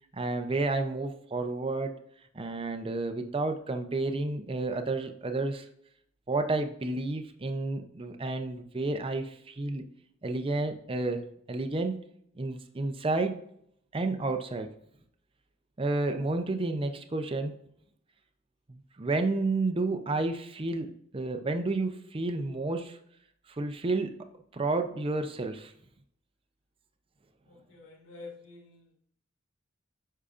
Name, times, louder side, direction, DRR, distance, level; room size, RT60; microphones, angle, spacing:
voice 1, 0.1-2.0 2.3-5.7 6.3-9.8 10.2-11.2 11.5-12.0 12.4-13.4 13.9-14.7 15.8-17.6 18.7-23.0 23.5-24.2 24.5-25.7, right 2 dB, 25° right, 6 dB, 0.6 m, -31 dB
voice 2, 27.4-28.8, left 3 dB, 90° left, -2 dB, 1.5 m, -48 dB
8.4 x 5.6 x 2.5 m, 0.69 s
head